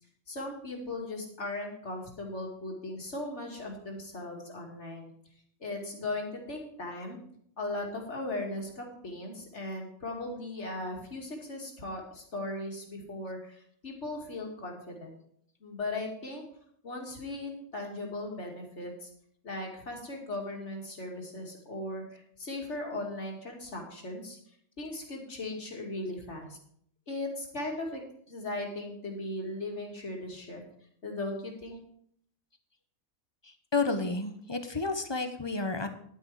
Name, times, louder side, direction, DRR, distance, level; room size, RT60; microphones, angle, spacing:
voice 1, 0.3-5.1 5.6-7.2 7.6-15.1 15.6-16.4 16.8-19.1 19.4-24.4 24.8-26.6 27.1-28.0 28.3-30.6 31.0-31.8, left 2 dB, 55° left, 1 dB, 2.7 m, -38 dB
voice 2, 33.7-35.9, left 3 dB, 20° left, 8 dB, 0.9 m, -30 dB
10.5 x 9.5 x 4.8 m, 0.65 s
omnidirectional pair, 1.4 m